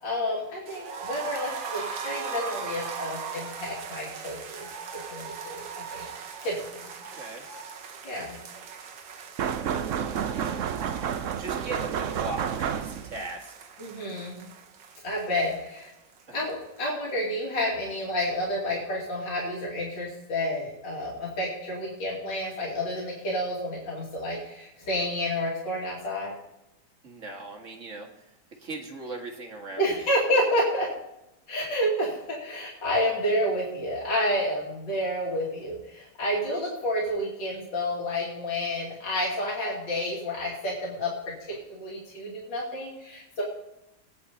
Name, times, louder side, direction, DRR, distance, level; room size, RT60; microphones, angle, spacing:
voice 1, 0.0-4.7 5.1-6.1 6.4-6.6 8.0-8.4 13.8-14.4 15.0-15.9 16.3-26.3 29.8-30.9 31.5-41.1 41.4-43.4, equal, 75° left, -4 dB, 3.3 m, -30 dB
sound 1, 0.7-16.5 16.8-16.9 17.2-17.3, right 5 dB, 85° right, 1.9 m, -40 dB
voice 2, 7.1-7.5 10.0-11.0 11.4-13.5 16.3-16.5 27.0-28.1 28.6-30.1, right 2 dB, 45° right, 2 dB, 1.9 m, -39 dB
sound 2, 9.4-13.3, right 8 dB, 65° right, 0.8 m, -30 dB
19.0 x 9.7 x 4.2 m, 0.87 s
omnidirectional pair, 2.0 m